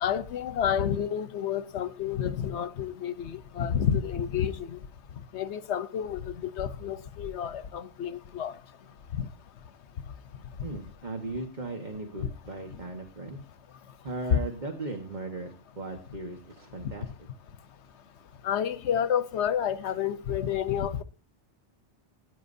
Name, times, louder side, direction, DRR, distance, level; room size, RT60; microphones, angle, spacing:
voice 1, 0.0-4.8 5.3-8.5 9.2-9.3 14.3-14.4 18.4-21.0, left 9 dB, 75° left, 1.0 m, -29 dB
voice 2, 10.6-13.4 14.0-17.1, right 2 dB, 40° right, 1.4 m, -37 dB
19.5 x 10.0 x 2.7 m
omnidirectional pair, 1.2 m